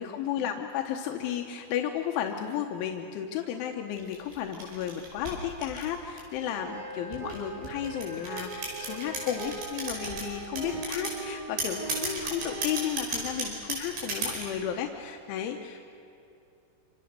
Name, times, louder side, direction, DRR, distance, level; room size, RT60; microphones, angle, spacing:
voice 1, 0.0-15.9, left 9 dB, 85° left, 3 dB, 3.5 m, -33 dB
sound 1, 4.0-6.4 7.1-10.2 10.6-11.2 11.6-14.6, right 2 dB, 70° right, 8.0 m, -34 dB
sound 2, 6.5-12.8, right 3 dB, 45° right, 4.5 m, -40 dB
27.5 x 27.0 x 6.7 m, 2.8 s
omnidirectional pair, 5.4 m